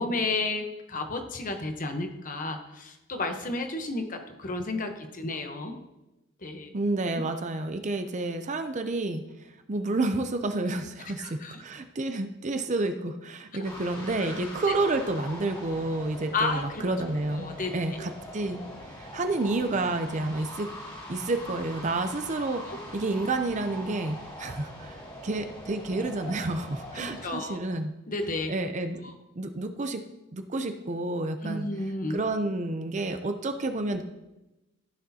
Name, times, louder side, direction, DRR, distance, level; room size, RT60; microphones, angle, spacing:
voice 1, 0.0-5.8 6.4-6.7 11.2-11.5 13.5-13.6 16.3-16.8 17.4-18.0 22.7-22.8 26.9-27.6 28.1-28.5 29.0-29.1 31.4-32.2, left 3 dB, 40° left, 5 dB, 1.0 m, -32 dB
voice 2, 6.7-9.2 9.7-18.6 18.9-20.7 21.1-22.7 22.9-27.9 28.5-30.0 30.3-31.7 32.1-34.0, right 2 dB, 35° right, 7 dB, 0.6 m, -30 dB
sound 1, 13.6-27.3, left 1 dB, 25° left, 2.1 m, -42 dB
14.5 x 6.3 x 2.8 m, 0.97 s
head